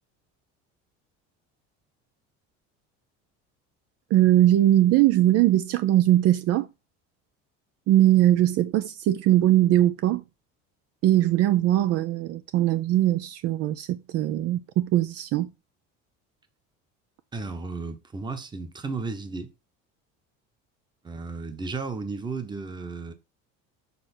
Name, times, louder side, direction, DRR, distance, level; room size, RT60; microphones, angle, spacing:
voice 1, 4.1-6.7 7.9-10.2 11.0-15.5, right 13 dB, 55° right, 0.6 m, -21 dB
voice 2, 17.3-19.5 21.0-23.1, right 4 dB, 15° right, 1.0 m, -34 dB
6.9 x 4.4 x 4.2 m
cardioid pair, 150°, 30 cm